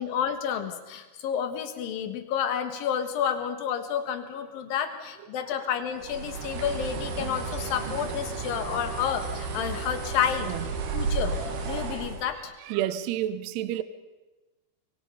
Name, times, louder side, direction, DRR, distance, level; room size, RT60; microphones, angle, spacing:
voice 1, 0.0-10.5 10.9-11.4 11.6-12.5, left 8 dB, 60° left, 2.9 m, -30 dB
Bird, 6.0-12.3, right 4 dB, 60° right, 3.7 m, -33 dB
voice 2, 12.7-13.8, right 12 dB, 75° right, 2.7 m, -29 dB
26.0 x 23.0 x 5.6 m
omnidirectional pair, 5.4 m